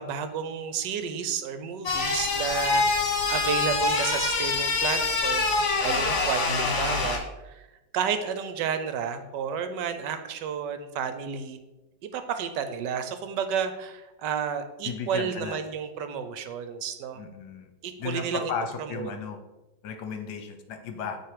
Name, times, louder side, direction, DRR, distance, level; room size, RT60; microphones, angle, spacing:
voice 1, 0.0-7.7 7.9-11.6 12.1-17.2 17.8-18.5 18.9-19.1, right 7 dB, 80° right, 9 dB, 1.3 m, -31 dB
sound 1, 1.9-7.2, left 3 dB, 50° left, 1.4 m, -25 dB
voice 2, 6.5-7.1 14.8-15.6 17.2-17.7 18.0-19.4 19.8-21.2, left 5 dB, 70° left, 6 dB, 1.3 m, -35 dB
9.1 x 3.1 x 4.8 m, 1.0 s
omnidirectional pair, 1.9 m